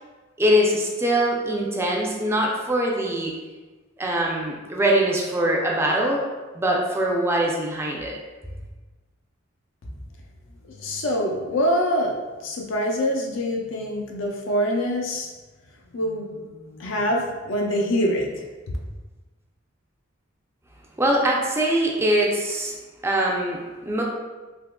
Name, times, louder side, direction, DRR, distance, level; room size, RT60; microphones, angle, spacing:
voice 1, 0.4-3.3 4.0-6.2 6.5-8.2 21.0-22.7 23.0-24.0, right 1 dB, 15° right, -1 dB, 0.3 m, -22 dB
voice 2, 10.6-15.3 15.9-18.4, equal, 75° left, 0 dB, 0.5 m, -25 dB
3.5 x 2.8 x 2.2 m, 1.2 s
head